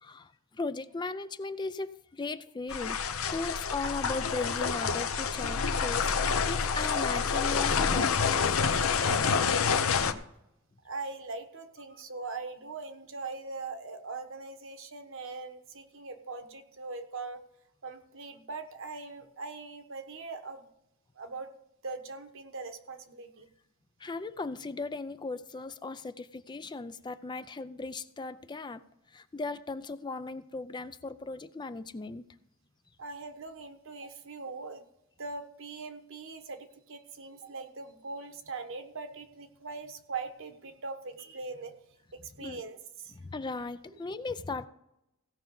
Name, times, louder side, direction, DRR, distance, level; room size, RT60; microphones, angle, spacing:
voice 1, 0.0-3.0 3.3-8.3 24.0-28.8 29.1-32.3 42.4-42.6 43.1-44.7, left 3 dB, 20° left, 12 dB, 0.4 m, -37 dB
sound 1, 2.7-10.1, left 6 dB, 70° left, 0.7 m, -28 dB
voice 2, 9.6-10.1 10.8-17.4 17.8-20.7 21.2-21.5 21.8-23.5 33.0-34.8 35.2-41.7 42.1-43.2, right 4 dB, 65° right, 7 dB, 1.2 m, -41 dB
16.5 x 5.9 x 5.4 m, 0.83 s
head